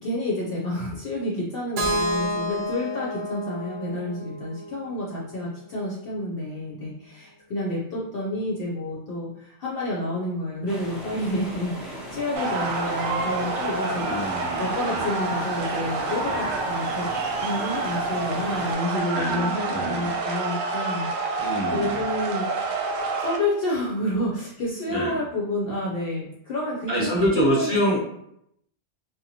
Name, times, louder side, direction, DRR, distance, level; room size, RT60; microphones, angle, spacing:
voice 1, 0.0-14.2 14.6-17.1 17.4-22.5 22.9-27.8, left 1 dB, 60° left, -5 dB, 0.7 m, -29 dB
Keyboard (musical), 1.8-5.7, equal, 55° right, 0.6 m, -30 dB
sound 1, 10.7-18.7, equal, ahead, 0.4 m, -38 dB
sound 2, 12.3-23.4, right 3 dB, 85° right, 1.0 m, -28 dB
voice 2, 14.0-15.1 16.2-16.5 19.1-20.1 21.4-22.0 24.9-25.2 26.9-28.0, equal, 20° right, -7 dB, 0.9 m, -26 dB
2.8 x 2.2 x 2.7 m, 0.74 s
omnidirectional pair, 1.3 m